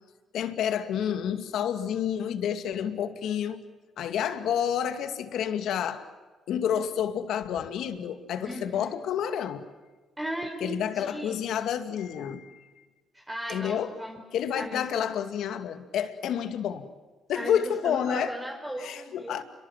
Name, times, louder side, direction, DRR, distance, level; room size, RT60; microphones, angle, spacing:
voice 1, 0.3-3.6 4.0-6.1 6.5-9.6 10.6-12.7 13.5-13.9 14.3-16.9 17.3-18.3 18.8-19.4, left 9 dB, 80° left, 8 dB, 2.3 m, -29 dB
voice 2, 8.4-8.9 10.2-11.5 13.1-14.2 14.5-15.0 17.3-19.4, right 1 dB, 15° right, 1 dB, 4.9 m, -37 dB
29.5 x 24.0 x 7.5 m, 1.3 s
cardioid pair, 90°, 0 cm